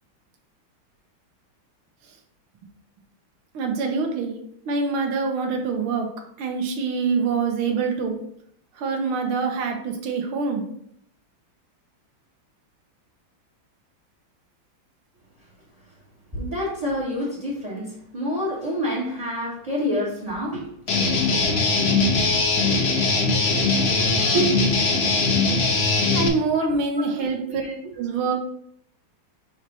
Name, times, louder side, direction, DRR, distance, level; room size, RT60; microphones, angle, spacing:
voice 1, 3.5-4.4 4.7-6.1 6.4-8.2 8.8-10.6 26.1-27.6 28.0-28.3, right 4 dB, 85° right, 2 dB, 1.8 m, -25 dB
voice 2, 16.3-20.7 21.4-21.5 22.1-22.4 24.0-24.9 26.5-27.9, equal, 20° right, -4 dB, 1.4 m, -28 dB
Guitar, 20.9-26.3, left 3 dB, 55° left, 0.7 m, -21 dB
5.8 x 3.1 x 5.3 m, 0.69 s
omnidirectional pair, 2.3 m